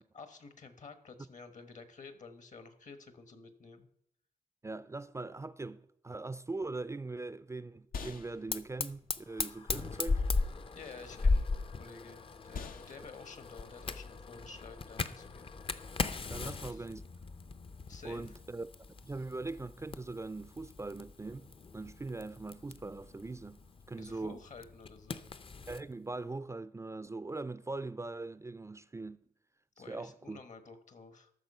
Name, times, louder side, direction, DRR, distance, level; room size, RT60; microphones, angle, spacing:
voice 1, 0.1-3.9 10.7-15.6 16.4-16.9 17.9-18.4 24.0-25.3 29.8-31.3, left 4 dB, 60° left, 1.4 m, -51 dB
voice 2, 4.6-10.2 16.3-17.0 18.0-18.7 19.0-21.5 21.7-23.6 23.9-24.4 25.7-29.2 29.9-30.4, right 3 dB, 20° right, 0.4 m, -41 dB
sound 1, 6.6-16.2, left 5 dB, 80° left, 0.8 m, -50 dB
Fire, 8.5-25.8, left 3 dB, 40° left, 0.6 m, -38 dB
13.5 x 6.2 x 5.5 m
cardioid pair, 80°, 14 cm